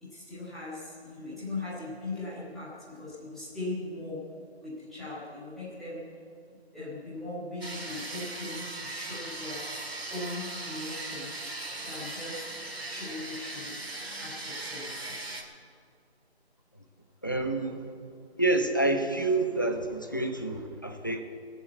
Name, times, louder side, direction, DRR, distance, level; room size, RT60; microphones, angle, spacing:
voice 1, 0.0-4.2 4.6-6.0 6.7-9.6 10.1-13.8 14.2-15.3, left 2 dB, ahead, -13 dB, 1.3 m, -39 dB
sound 1, 7.6-15.4, right 2 dB, 70° right, 3.6 m, -39 dB
voice 2, 17.2-17.8 18.4-21.2, right 2 dB, 20° left, 5 dB, 0.6 m, -28 dB
19.5 x 7.1 x 8.3 m, 2.3 s
figure-of-eight pair, 165°, 33 cm